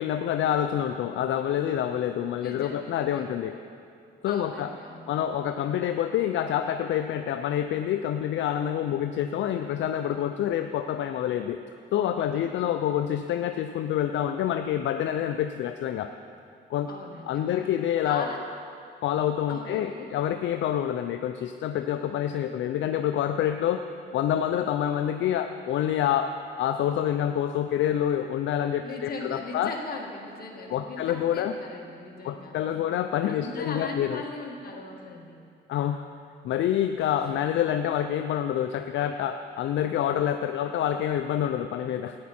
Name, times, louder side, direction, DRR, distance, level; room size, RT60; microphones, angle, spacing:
voice 1, 0.0-3.6 4.2-4.7 5.1-11.6 11.9-16.1 16.7-16.9 17.3-18.3 19.0-23.8 24.1-29.7 30.7-31.5 32.2-34.2 35.7-36.0 36.4-42.2, left 10 dB, 70° left, 8 dB, 0.5 m, -27 dB
voice 2, 2.4-3.3 4.3-5.1 12.3-12.8 16.9-17.7 18.1-18.4 19.5-20.1 28.8-32.8 33.3-35.4 37.0-37.3, left 3 dB, 50° left, 0 dB, 1.8 m, -39 dB
14.5 x 9.4 x 4.3 m, 2.4 s
cardioid pair, 90°, 20 cm